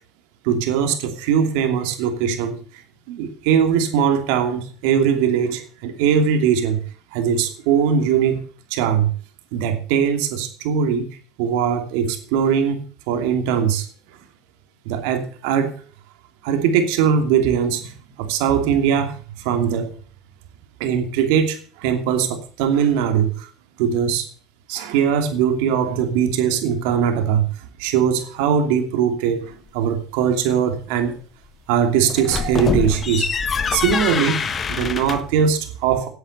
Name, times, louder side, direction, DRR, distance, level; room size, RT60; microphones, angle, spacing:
voice 1, 0.4-2.6 3.1-6.8 7.1-8.4 8.7-9.1 9.5-11.1 11.4-13.9 14.8-15.7 16.4-17.9 18.2-19.9 20.8-23.5 23.8-24.3 24.7-27.5 27.8-31.2 31.7-33.3 33.7-36.1, right 7 dB, 75° right, 7 dB, 2.7 m, -20 dB
sound 1, 32.1-35.4, left 6 dB, 35° left, 1.3 m, -25 dB
10.0 x 8.7 x 8.1 m, 0.41 s
supercardioid pair, 95°, 0 cm